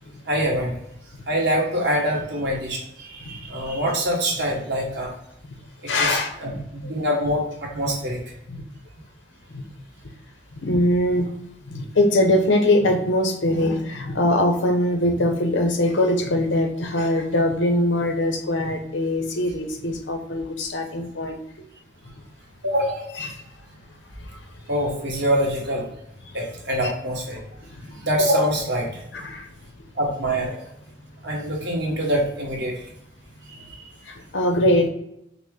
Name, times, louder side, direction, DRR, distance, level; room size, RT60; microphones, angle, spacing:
voice 1, 0.3-0.7 1.3-5.1 5.8-8.2 22.6-23.0 24.7-25.9 26.3-27.4 28.0-28.9 29.9-30.6 31.2-32.8, equal, 70° right, -2 dB, 1.4 m, -24 dB
voice 2, 5.9-6.5 8.5-8.6 9.5-9.7 10.5-11.3 11.6-21.4 23.2-23.4 24.2-24.3 26.8-26.9 27.6-27.9 29.1-29.5 34.1-34.9, left 1 dB, 90° left, 4 dB, 0.8 m, -22 dB
5.8 x 2.1 x 3.6 m, 0.79 s
head